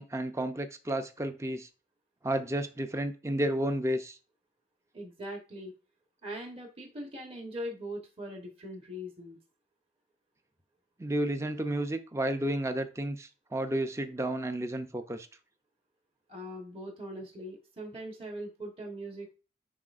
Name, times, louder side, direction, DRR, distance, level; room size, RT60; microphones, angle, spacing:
voice 1, 0.0-1.7 2.2-4.2 11.0-15.3, right 1 dB, 15° right, 8 dB, 0.5 m, -32 dB
voice 2, 4.9-5.7 6.2-9.4 16.3-19.3, equal, 30° right, 1 dB, 1.2 m, -41 dB
9.8 x 4.1 x 2.5 m, 0.34 s
head